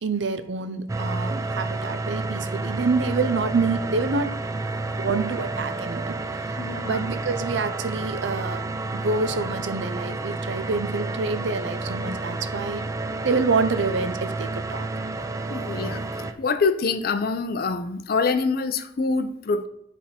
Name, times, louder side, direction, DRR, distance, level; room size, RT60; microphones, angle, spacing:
voice 1, 0.0-4.4 5.0-8.6 8.9-12.8 13.2-14.9, right 4 dB, 70° right, 10 dB, 0.6 m, -27 dB
sound 1, 0.9-16.3, right 2 dB, 15° right, 0.4 m, -30 dB
voice 2, 6.6-7.1 15.5-16.0 16.4-19.7, left 4 dB, 55° left, 10 dB, 0.5 m, -25 dB
9.5 x 3.5 x 4.3 m, 0.76 s
head